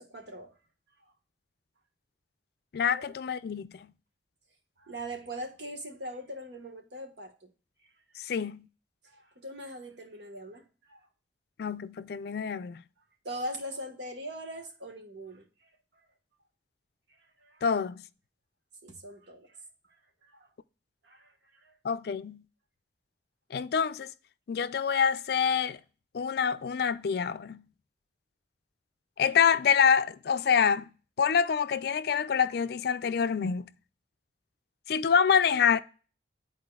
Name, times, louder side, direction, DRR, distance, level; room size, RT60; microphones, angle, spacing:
voice 1, 0.1-0.5 2.9-3.1 4.8-7.5 9.0-11.0 13.2-15.5 17.4-17.6 18.8-19.6 20.2-20.5 21.0-21.3 21.6-21.8, right 1 dB, 75° right, 1.4 m, -41 dB
voice 2, 2.7-3.9 8.2-8.7 11.6-12.8 17.6-18.0 21.8-22.4 23.5-24.1 24.5-25.8 26.1-27.6 29.2-30.9 31.2-33.7 34.9-35.8, left 7 dB, 60° left, 0.4 m, -26 dB
11.5 x 4.1 x 2.3 m
head